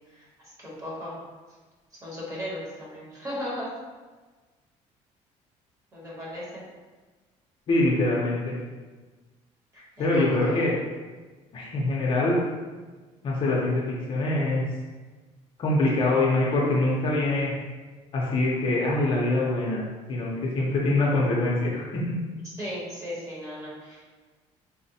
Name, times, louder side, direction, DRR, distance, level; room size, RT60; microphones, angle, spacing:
voice 1, 0.6-1.2 2.0-3.7 5.9-6.6 9.7-10.7 22.6-24.2, equal, 25° right, -7 dB, 1.1 m, -36 dB
voice 2, 7.7-8.5 10.0-10.7 11.5-12.4 13.2-14.6 15.6-17.5 18.1-22.1, left 2 dB, 40° left, -4 dB, 0.6 m, -24 dB
4.1 x 2.1 x 2.7 m, 1.3 s
cardioid pair, 155°, 13 cm